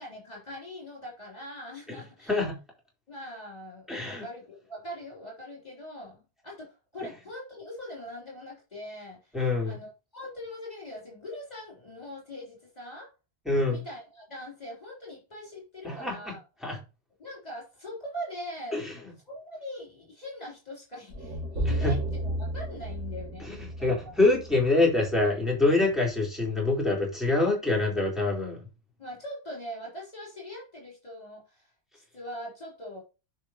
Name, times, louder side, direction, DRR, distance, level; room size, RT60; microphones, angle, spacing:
voice 1, 0.0-2.4 3.1-9.4 9.6-13.1 13.7-16.4 17.2-18.8 19.3-23.5 23.8-24.2 29.0-33.0, left 1 dB, 30° left, 3.9 m, -42 dB
voice 2, 3.9-4.3 9.3-9.8 13.5-13.8 15.8-16.2 16.6-16.8 18.7-18.9 21.6-21.9 23.4-23.6 23.8-28.6, left 2 dB, ahead, 4.1 m, -25 dB
sound 1, 21.1-25.2, right 1 dB, 70° right, 3.2 m, -33 dB
10.5 x 5.7 x 3.0 m
omnidirectional pair, 1.3 m